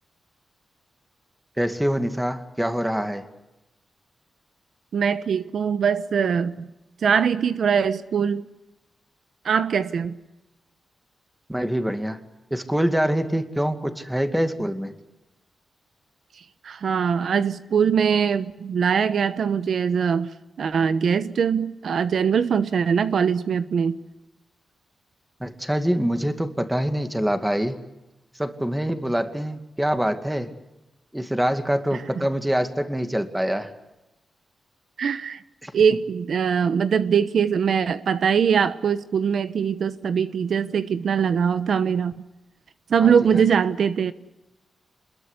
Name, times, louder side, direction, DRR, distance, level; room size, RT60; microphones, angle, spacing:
voice 1, 1.6-3.3 11.5-12.2 12.5-14.9 25.4-27.8 28.4-30.5 31.1-33.7 35.6-35.7 43.0-43.5, equal, 5° right, 8 dB, 2.3 m, -25 dB
voice 2, 4.9-6.7 7.0-8.4 9.4-10.1 16.6-20.3 20.6-24.0 35.0-35.4 35.7-42.1 42.9-44.1, right 7 dB, 70° right, 12 dB, 1.0 m, -22 dB
27.0 x 21.5 x 8.3 m, 0.97 s
wide cardioid pair, 110°, 0 cm